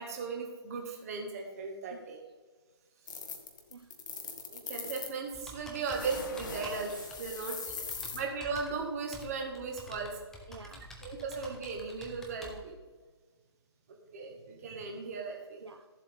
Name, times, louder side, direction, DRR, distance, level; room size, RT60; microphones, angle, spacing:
voice 1, 0.0-2.2 4.5-6.9 7.2-7.6 8.1-10.2 11.0-12.7 14.1-15.6, right 5 dB, 35° right, 1.8 m, -37 dB
sound 1, 3.1-5.2 5.8-8.2, left 5 dB, 45° left, 1.3 m, -41 dB
Computer keyboard, 5.3-12.6, left 1 dB, 5° left, 0.7 m, -49 dB
voice 2, 7.4-8.2 10.5-11.0 12.5-12.6 15.6-15.9, right 5 dB, 70° right, 0.5 m, -51 dB
14.0 x 7.5 x 3.7 m
figure-of-eight pair, 135°, 14 cm